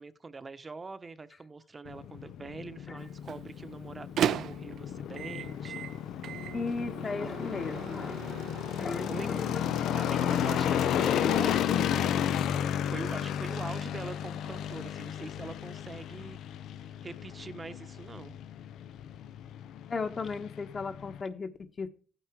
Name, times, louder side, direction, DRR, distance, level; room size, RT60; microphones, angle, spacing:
voice 1, 0.0-5.8 9.1-9.3 9.9-16.4 17.0-18.4, right 3 dB, 30° right, 1.1 m, -43 dB
sound 1, 1.9-21.2, left 10 dB, 80° left, 0.7 m, -33 dB
Microwave oven, 3.0-11.2, right 9 dB, 70° right, 0.8 m, -38 dB
voice 2, 6.5-8.3 8.8-9.7 19.9-21.9, left 4 dB, 40° left, 1.5 m, -36 dB
15.0 x 9.2 x 4.8 m
cardioid pair, 90°, 0 cm